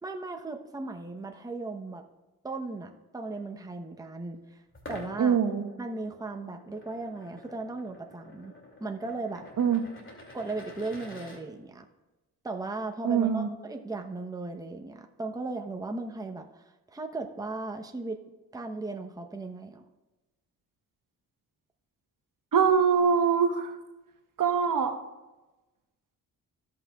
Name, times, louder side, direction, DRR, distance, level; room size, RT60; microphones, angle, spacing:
voice 1, 0.0-2.0 2.4-4.6 4.9-5.4 5.8-8.5 8.8-9.5 10.3-11.8 12.4-18.2 18.5-19.8, right 3 dB, 10° right, 3 dB, 0.9 m, -37 dB
sound 1, 4.7-11.4, left 1 dB, 30° left, 2.5 m, -48 dB
voice 2, 5.2-5.6 9.6-9.8 13.0-13.5 22.5-23.8 24.4-25.0, right 6 dB, 55° right, 5 dB, 1.3 m, -23 dB
16.0 x 5.7 x 2.4 m, 1.1 s
supercardioid pair, 50°, 39 cm